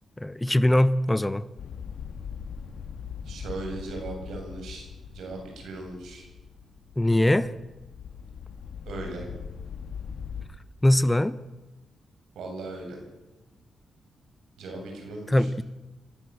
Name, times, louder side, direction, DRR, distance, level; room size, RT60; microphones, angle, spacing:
voice 1, 0.2-1.5 7.0-7.5 10.8-11.4 15.3-15.6, left 1 dB, 10° left, 16 dB, 0.8 m, -21 dB
sound 1, 1.6-10.5, left 7 dB, 75° left, 2.1 m, -40 dB
voice 2, 3.2-4.8 5.1-6.3 8.9-9.3 12.3-13.0 14.6-15.5, right 2 dB, 85° right, 2 dB, 8.0 m, -38 dB
26.5 x 16.5 x 7.9 m, 1.1 s
cardioid pair, 115°, 0 cm